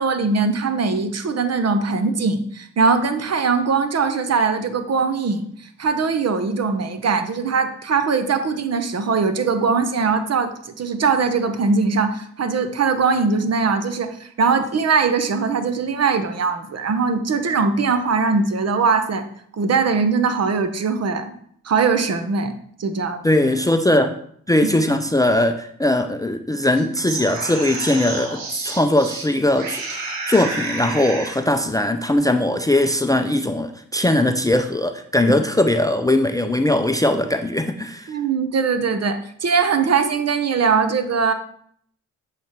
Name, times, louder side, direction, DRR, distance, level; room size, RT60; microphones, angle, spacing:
voice 1, 0.0-19.2 19.5-21.3 21.6-23.2 38.1-41.3, right 5 dB, 50° right, 9 dB, 0.9 m, -21 dB
voice 2, 23.2-24.1 24.5-38.1, left 1 dB, 10° left, 8 dB, 0.5 m, -20 dB
sound 1, 26.8-29.3 29.6-31.4, right 3 dB, 85° right, 1.2 m, -30 dB
7.6 x 3.3 x 4.4 m, 0.64 s
supercardioid pair, 50°, 34 cm